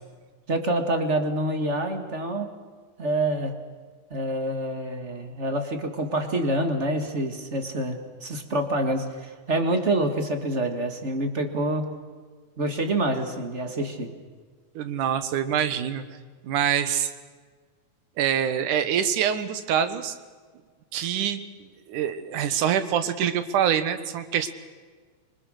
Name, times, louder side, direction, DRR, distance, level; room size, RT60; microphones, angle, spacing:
voice 1, 0.5-2.5 3.0-3.6 4.1-12.0 12.6-14.1, right 1 dB, 25° right, 6 dB, 1.8 m, -27 dB
voice 2, 14.8-16.0 16.4-17.1 18.2-20.2 20.9-21.4 21.9-24.5, right 9 dB, 80° right, 11 dB, 2.8 m, -25 dB
26.5 x 24.5 x 6.6 m, 1.5 s
omnidirectional pair, 3.6 m